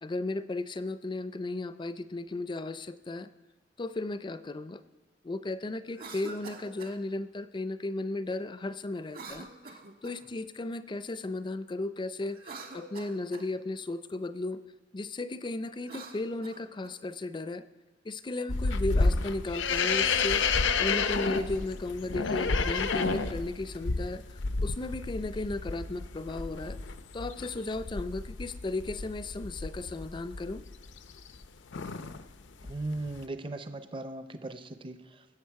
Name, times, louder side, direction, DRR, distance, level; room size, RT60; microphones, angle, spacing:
voice 1, 0.0-3.3 3.8-4.8 5.2-12.4 12.7-14.6 14.9-17.6 18.0-24.2 24.6-26.8 27.1-30.6, left 2 dB, 25° left, 13 dB, 0.4 m, -35 dB
Cough, 5.9-7.0 9.1-10.3 12.2-13.5 15.7-17.0, right 3 dB, 55° right, 1.3 m, -46 dB
sound 1, 18.5-31.4 31.7-32.2 32.6-33.3, left 4 dB, 80° left, 0.6 m, -31 dB
voice 2, 32.6-35.3, right 2 dB, 30° right, 9 dB, 0.6 m, -38 dB
21.0 x 8.0 x 4.7 m, 1.3 s
head